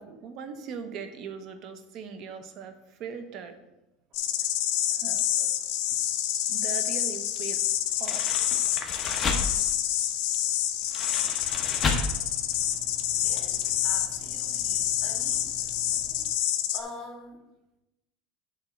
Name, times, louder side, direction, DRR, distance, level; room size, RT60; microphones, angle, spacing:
voice 1, 0.0-3.6 4.9-5.5 6.5-8.2 10.9-11.0, right 6 dB, 50° right, 8 dB, 0.9 m, -40 dB
sound 1, 4.1-16.8, left 12 dB, 65° left, 0.6 m, -28 dB
sound 2, 7.9-9.7 10.8-12.2 12.5-12.7 13.4-13.5 13.6-13.7, left 4 dB, 25° left, 1.0 m, -31 dB
sound 3, 11.3-16.3, right 1 dB, 30° right, 1.8 m, -49 dB
voice 2, 13.1-15.7 16.7-17.5, left 2 dB, 5° right, -9 dB, 2.5 m, -45 dB
8.1 x 3.7 x 5.9 m, 0.95 s
supercardioid pair, 140°, 0 cm